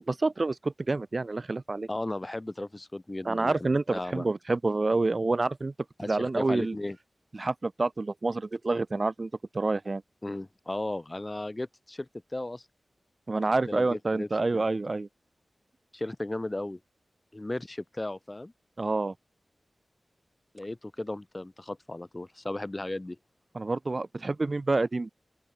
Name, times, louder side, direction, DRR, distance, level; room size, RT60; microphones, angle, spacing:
voice 1, 0.0-1.9 3.2-5.7 6.0-6.8 7.3-10.0 13.3-15.1 18.8-19.1 23.5-25.1, right 3 dB, 45° right, 1.3 m, -28 dB
voice 2, 1.9-4.3 6.0-7.0 10.2-12.6 13.5-14.6 15.9-16.8 17.3-18.5 20.5-23.2, left 1 dB, 25° left, 1.2 m, -35 dB
open air
wide cardioid pair, 65°, 0 cm